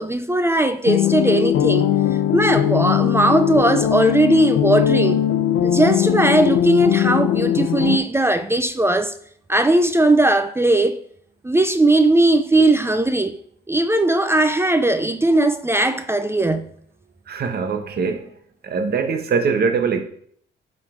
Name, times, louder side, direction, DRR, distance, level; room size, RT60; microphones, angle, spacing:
voice 1, 0.0-1.9 2.3-5.2 5.6-9.1 9.5-11.0 11.4-13.4 13.7-16.7, right 2 dB, 10° right, 0.4 m, -18 dB
sound 1, 0.8-8.0, left 10 dB, 80° left, 0.6 m, -19 dB
voice 2, 17.3-18.2 18.6-20.0, right 5 dB, 55° right, 1.2 m, -22 dB
11.5 x 3.8 x 3.7 m
cardioid pair, 90°, 20 cm